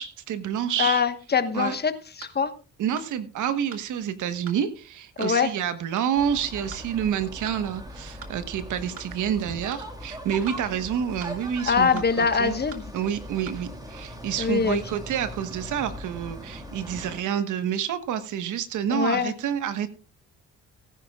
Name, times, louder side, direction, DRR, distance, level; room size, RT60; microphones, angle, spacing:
voice 1, 0.0-1.0 1.5-1.8 2.8-12.5 12.9-19.9, right 9 dB, 80° right, 11 dB, 1.3 m, -28 dB
voice 2, 0.8-1.9 2.2-2.5 5.2-5.5 11.7-12.8 14.4-14.8 18.9-19.3, left 6 dB, 35° left, 10 dB, 1.3 m, -23 dB
sound 1, 2.2-2.4 3.0-3.1 3.7-3.9 4.5-4.6 5.2-5.4 6.0-6.1 6.7-6.9 7.5-7.6 8.2-8.4 9.0-9.1 9.7-9.9 10.5-10.6 11.2-11.4 12.0-12.1 12.7-12.9 13.5-13.6, right 6 dB, 50° right, 1.7 m, -43 dB
sound 2, 6.2-17.2, equal, 10° right, 2.8 m, -40 dB
18.5 x 10.5 x 2.4 m, 0.34 s
cardioid pair, 90°, 30 cm